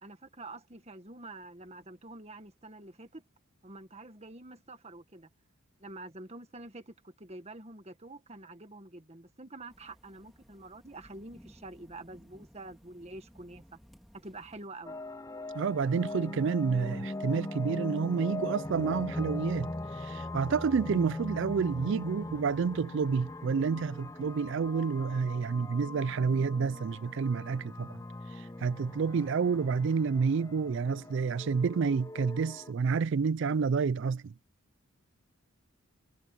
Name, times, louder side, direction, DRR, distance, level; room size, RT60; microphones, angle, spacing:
voice 1, 0.0-3.2 3.6-5.3 5.8-13.8 14.1-15.0, right 2 dB, 30° right, 1.5 m, -47 dB
sound 1, 9.7-14.7, equal, ahead, 2.6 m, -58 dB
sound 2, 14.8-32.7, left 2 dB, 15° left, 0.5 m, -40 dB
voice 2, 15.5-19.7 20.0-28.0 28.4-34.3, right 5 dB, 55° right, 0.4 m, -29 dB
head